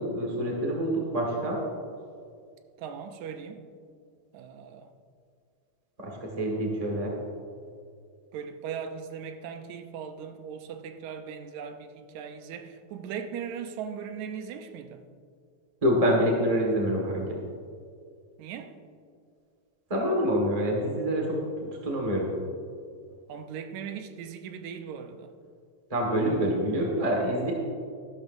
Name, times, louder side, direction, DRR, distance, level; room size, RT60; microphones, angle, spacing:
voice 1, 0.0-1.6 6.0-7.1 15.8-17.4 19.9-22.3 25.9-27.5, equal, 25° right, 0.8 m, -26 dB
voice 2, 2.8-3.6 4.3-4.9 8.3-15.0 18.4-18.8 23.3-25.3, right 7 dB, 75° right, 2.0 m, -39 dB
14.0 x 12.0 x 2.6 m
omnidirectional pair, 3.5 m